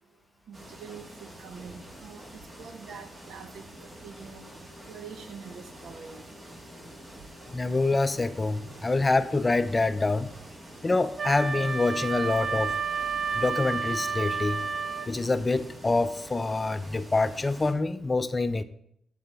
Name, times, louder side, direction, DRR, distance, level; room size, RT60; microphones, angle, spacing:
sound 1, 0.5-17.7, right 1 dB, 25° right, 1.6 m, -47 dB
voice 1, 0.5-2.2 2.6-4.4 4.9-6.2, right 6 dB, 85° right, 8 dB, 0.8 m, -45 dB
voice 2, 7.5-10.3 10.8-12.7 13.3-14.6 15.1-18.6, left 3 dB, 25° left, 13 dB, 0.4 m, -26 dB
Wind instrument woodwind instrument, 11.2-15.2, right 5 dB, 45° right, 0.5 m, -30 dB
7.3 x 6.8 x 3.4 m, 0.72 s
cardioid pair, 85°, 0 cm